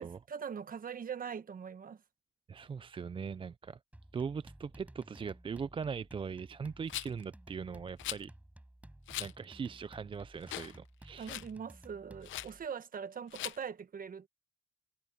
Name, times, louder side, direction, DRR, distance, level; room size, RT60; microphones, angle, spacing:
voice 1, 0.0-2.0 11.1-14.3, right 7 dB, 45° right, 1.3 m, -42 dB
voice 2, 2.5-3.8 4.1-8.3 9.2-11.4, right 6 dB, 25° right, 0.4 m, -40 dB
sound 1, 3.9-12.7, right 1 dB, 5° right, 5.0 m, -55 dB
Rattle, 6.9-7.2 8.0-8.2 9.1-9.3 9.8-9.9 10.4-10.8 11.0-11.5 12.2-12.5 13.3-13.6, left 14 dB, 80° left, 0.7 m, -40 dB
cardioid pair, 90°, 20 cm